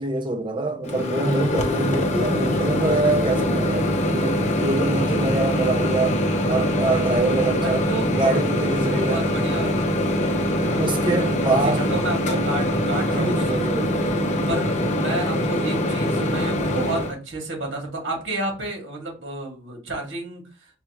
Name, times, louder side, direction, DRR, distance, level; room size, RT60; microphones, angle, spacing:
voice 1, 0.0-6.2 6.5-7.8 8.2-9.3 10.7-11.8 13.1-14.2, right 2 dB, 25° right, 0.6 m, -25 dB
Microwave oven, 0.8-17.1, left 1 dB, 35° left, 0.6 m, -23 dB
voice 2, 7.6-8.1 8.9-10.0 10.5-13.8 14.5-20.4, right 2 dB, 80° right, 2.0 m, -31 dB
5.5 x 2.4 x 2.9 m
head